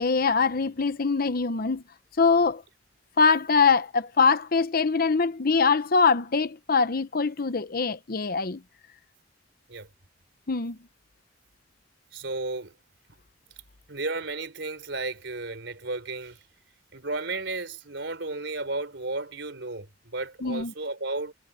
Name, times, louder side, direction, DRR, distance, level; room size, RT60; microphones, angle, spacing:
voice 1, 0.0-1.8 2.2-2.6 3.2-8.6 10.5-10.8 20.4-20.7, left 4 dB, 55° left, 0.9 m, -23 dB
voice 2, 12.1-12.8 13.9-16.4 16.9-21.3, right 2 dB, 75° right, 3.9 m, -33 dB
head